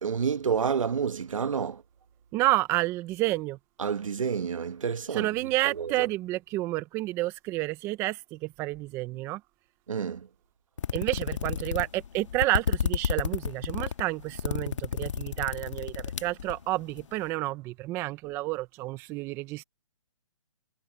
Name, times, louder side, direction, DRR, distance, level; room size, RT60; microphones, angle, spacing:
voice 1, 0.0-1.8 3.8-6.1 9.9-10.3, right 6 dB, 75° right, 1.6 m, -29 dB
voice 2, 2.3-3.6 5.1-9.4 10.9-19.6, right 18 dB, 15° right, 0.7 m, -30 dB
sound 1, 10.8-17.0, left 7 dB, 65° left, 1.6 m, -31 dB
hypercardioid pair, 155°, 17 cm